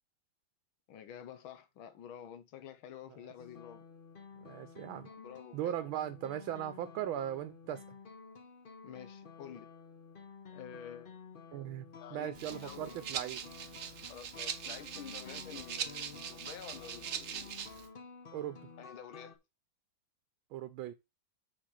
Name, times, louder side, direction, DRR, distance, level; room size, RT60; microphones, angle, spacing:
voice 1, 0.9-3.9 5.2-5.7 8.8-9.7 10.5-11.2 12.0-13.0 14.1-17.6 18.8-19.4, left 9 dB, 85° left, 1.7 m, -49 dB
sound 1, 3.4-19.4, left 5 dB, 45° left, 0.7 m, -52 dB
voice 2, 4.4-5.1 5.5-7.8 11.5-13.4 18.3-18.6 20.5-20.9, right 11 dB, 90° right, 1.5 m, -38 dB
Rattle (instrument), 12.3-17.9, right 8 dB, 55° right, 0.9 m, -42 dB
6.0 x 4.6 x 6.3 m
omnidirectional pair, 2.2 m